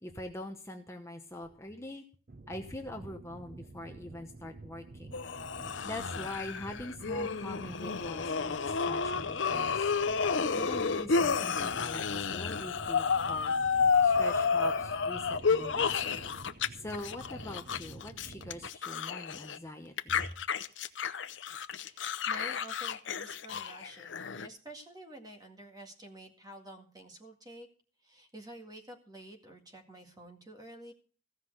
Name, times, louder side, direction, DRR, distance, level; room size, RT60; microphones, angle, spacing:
voice 1, 0.0-2.0 2.5-5.1 5.8-9.9 10.5-13.5 14.0-16.1 16.7-20.3, left 1 dB, 15° left, 3 dB, 1.0 m, -43 dB
sound 1, 2.3-18.7, right 3 dB, 45° right, 0.6 m, -49 dB
sound 2, 5.1-16.7 16.9-19.6 20.0-24.5, left 5 dB, 75° left, 0.7 m, -31 dB
voice 2, 21.9-27.7 28.0-30.9, right 1 dB, 20° right, 2 dB, 1.9 m, -49 dB
15.5 x 5.7 x 8.0 m, 0.43 s
head